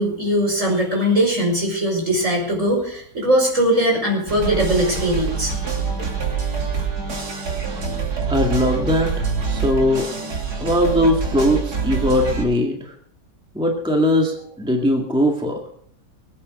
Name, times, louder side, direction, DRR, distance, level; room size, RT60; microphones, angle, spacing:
voice 1, 0.0-5.5, equal, 45° right, 0 dB, 5.8 m, -20 dB
sound 1, 4.3-12.4, right 5 dB, 65° right, 3.1 m, -25 dB
voice 2, 8.3-10.1 10.6-12.9 13.5-15.6, left 1 dB, 5° right, 1 dB, 1.9 m, -20 dB
21.5 x 8.8 x 6.5 m, 0.64 s
omnidirectional pair, 1.8 m